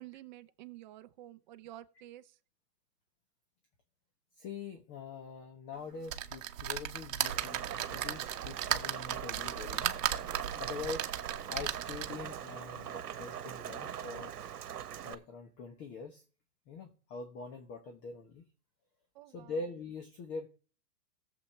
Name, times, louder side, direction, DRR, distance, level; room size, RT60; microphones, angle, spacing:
voice 1, 0.0-2.4 19.1-19.5, right 14 dB, 30° right, 10 dB, 0.7 m, -50 dB
voice 2, 4.4-10.0 10.6-11.1 11.5-14.4 15.0-16.2 16.7-18.5 19.3-20.5, left 4 dB, 25° left, 5 dB, 1.2 m, -44 dB
sound 1, 6.1-12.3 12.8-12.9 13.2-13.3, right 11 dB, 55° right, 1.1 m, -36 dB
Rain, 7.2-15.1, right 9 dB, 75° right, 1.2 m, -42 dB
17.5 x 7.2 x 3.4 m, 0.38 s
hypercardioid pair, 140°, 46 cm